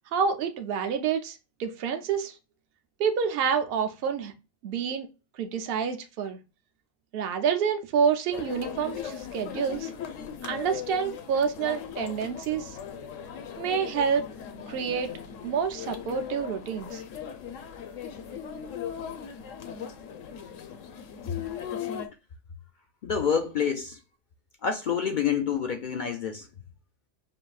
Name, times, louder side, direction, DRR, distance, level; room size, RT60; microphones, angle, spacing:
voice 1, 0.1-2.3 3.0-4.3 4.6-5.1 5.4-6.4 7.1-9.9 10.4-12.8 13.6-14.3 14.7-15.1 15.4-17.0, right 6 dB, 55° right, 0.8 m, -28 dB
sound 1, 8.3-22.1, left 8 dB, 85° left, 1.0 m, -38 dB
voice 2, 23.0-24.0 24.6-26.5, left 7 dB, 60° left, 0.5 m, -27 dB
5.7 x 2.7 x 2.3 m
omnidirectional pair, 1.3 m